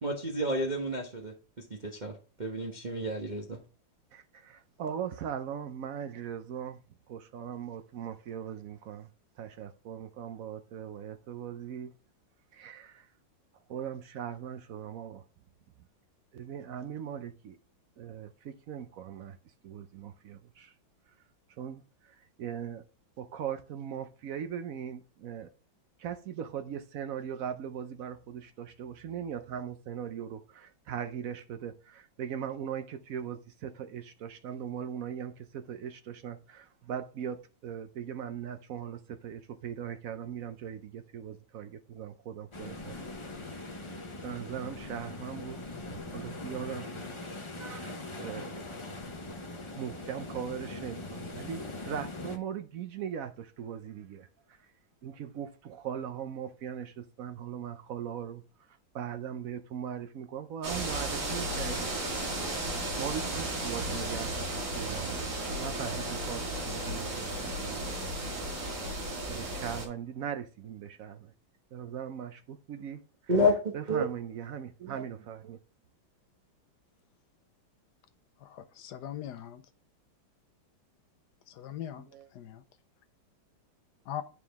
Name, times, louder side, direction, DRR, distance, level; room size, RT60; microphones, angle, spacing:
voice 1, 0.0-1.3 1.7-3.6 73.3-74.0, left 1 dB, 30° right, 1.0 m, -30 dB
voice 2, 4.1-6.8 7.1-9.1 9.4-11.9 12.5-13.1 13.7-15.2 16.3-17.6 18.0-19.4 19.6-20.7 21.6-22.8 23.2-25.5 26.0-43.1 43.5-43.8 44.2-47.0 47.6-48.6 49.8-54.7 55.0-62.1 63.0-68.0 69.3-71.3 71.7-73.3 73.7-75.6 82.0-82.3, right 8 dB, 70° right, 0.8 m, -40 dB
sound 1, 42.5-52.4, left 2 dB, 35° left, 0.4 m, -41 dB
sound 2, 60.6-69.9, right 1 dB, 55° right, 2.6 m, -34 dB
voice 3, 78.4-79.6 81.5-82.0 82.3-82.6 84.1-84.2, left 11 dB, 70° left, 1.1 m, -40 dB
9.2 x 4.9 x 3.5 m
omnidirectional pair, 2.1 m